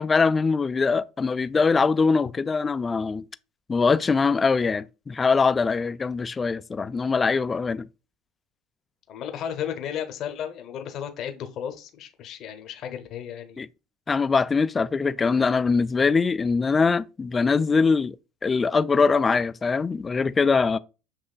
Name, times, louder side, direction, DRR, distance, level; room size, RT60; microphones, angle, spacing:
voice 1, 0.0-3.2 3.7-7.9 13.6-13.7 14.1-18.2 18.4-20.8, left 4 dB, 25° left, 0.3 m, -22 dB
voice 2, 9.1-13.6, left 9 dB, 55° left, 0.8 m, -34 dB
7.1 x 3.0 x 2.3 m
hypercardioid pair, 80°, 0 cm